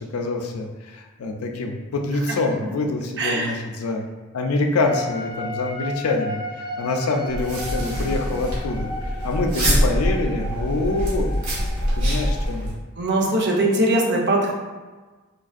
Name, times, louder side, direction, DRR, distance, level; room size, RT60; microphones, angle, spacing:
voice 1, 0.0-4.0 4.3-11.3 12.0-12.7, left 2 dB, 80° left, 3 dB, 0.4 m, -25 dB
voice 2, 3.2-3.5 13.0-14.5, right 1 dB, 50° right, -2 dB, 0.7 m, -20 dB
sound 1, 4.8-12.5, left 1 dB, 15° left, 0.4 m, -34 dB
sound 2, 7.3-12.7, equal, 70° right, 1.3 m, -24 dB
4.5 x 2.5 x 2.4 m, 1.3 s
head